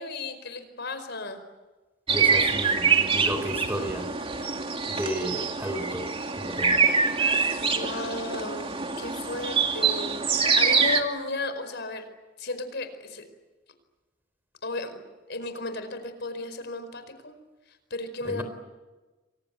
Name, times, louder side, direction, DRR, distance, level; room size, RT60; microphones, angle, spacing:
voice 1, 0.0-1.4 7.6-12.0 12.4-13.2 14.6-15.0 15.3-17.3 17.7-18.4, left 2 dB, 60° left, 10 dB, 4.9 m, -34 dB
voice 2, 2.1-4.1 4.9-6.0 6.4-6.9 18.3-18.4, equal, 10° right, 9 dB, 3.7 m, -33 dB
sound 1, 2.1-11.0, right 5 dB, 30° right, 2.5 m, -25 dB
30.0 x 24.0 x 8.4 m, 1.2 s
head